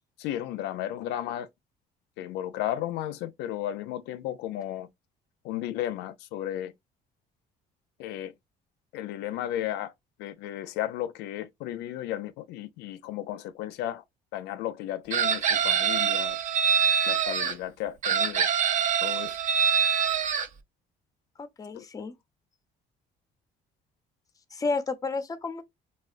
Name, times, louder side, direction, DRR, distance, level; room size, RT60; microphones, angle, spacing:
voice 1, 0.2-1.5 2.2-4.9 5.4-6.7 8.0-8.3 8.9-9.9 10.2-14.0 14.3-16.4 17.1-18.5 19.0-19.4 21.7-21.8, left 12 dB, 90° left, 0.4 m, -34 dB
Chicken rooster, 15.1-17.5 18.0-20.5, right 7 dB, 50° right, 0.5 m, -25 dB
voice 2, 21.4-22.1 24.5-25.6, left 3 dB, 20° left, 0.5 m, -31 dB
3.4 x 2.2 x 2.4 m
cardioid pair, 110°, 17 cm